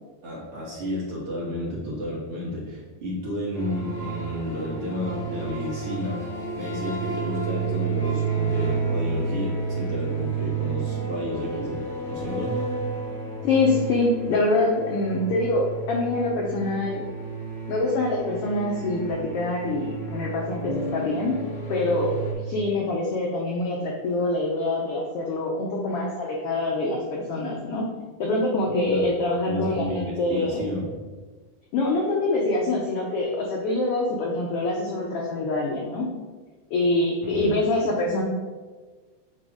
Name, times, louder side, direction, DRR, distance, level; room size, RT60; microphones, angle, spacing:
voice 1, 0.2-12.6 28.8-29.1 29.5-31.0 37.2-37.5, left 1 dB, 55° right, -5 dB, 2.2 m, -31 dB
sound 1, 3.5-22.3, right 4 dB, 55° left, 0.5 m, -31 dB
voice 2, 13.4-17.1 17.7-21.3 21.7-27.9 28.2-30.6 31.7-36.1 36.7-38.2, left 2 dB, 80° left, -1 dB, 1.3 m, -25 dB
7.8 x 3.0 x 4.8 m, 1.4 s
omnidirectional pair, 3.5 m